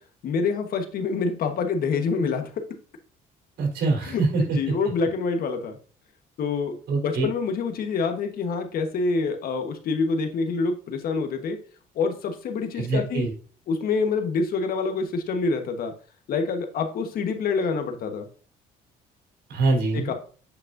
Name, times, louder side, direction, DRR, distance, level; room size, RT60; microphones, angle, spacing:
voice 1, 0.2-2.5 4.1-5.8 6.4-11.6 12.0-13.3 13.7-15.9 16.3-18.3 19.9-20.1, left 4 dB, 60° left, 5 dB, 1.2 m, -26 dB
voice 2, 3.6-4.7 6.9-7.3 12.8-13.3 19.5-20.1, right 3 dB, 75° right, -1 dB, 3.7 m, -24 dB
8.7 x 5.3 x 2.6 m, 0.41 s
cardioid pair, 110°, 17 cm